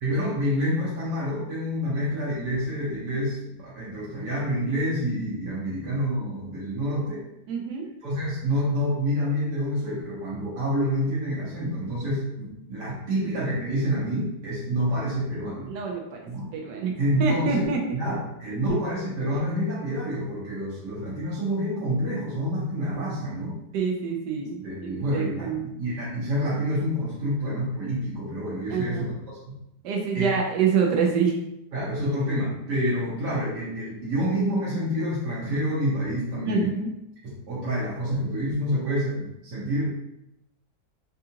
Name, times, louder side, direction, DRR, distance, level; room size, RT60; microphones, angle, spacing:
voice 1, 0.0-7.2 8.0-15.7 16.2-16.5 17.0-17.6 18.0-23.6 24.6-29.6 30.1-30.3 31.7-36.7 37.2-40.0, equal, 65° right, -9 dB, 1.5 m, -28 dB
voice 2, 7.5-7.9 13.1-13.2 15.7-16.2 16.5-18.0 18.7-18.8 23.7-25.7 28.7-29.1 29.8-31.4 36.4-36.9, right 6 dB, 85° right, 1 dB, 1.2 m, -26 dB
4.6 x 2.4 x 2.8 m, 0.85 s
omnidirectional pair, 1.8 m